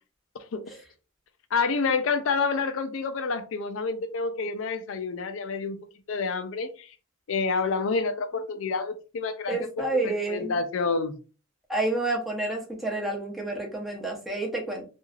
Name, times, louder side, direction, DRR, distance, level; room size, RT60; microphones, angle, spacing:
voice 1, 1.5-6.9 7.3-11.2, left 4 dB, 65° left, 0.4 m, -28 dB
voice 2, 9.5-10.6 11.7-14.8, right 2 dB, ahead, 0.7 m, -29 dB
3.1 x 2.4 x 2.3 m
head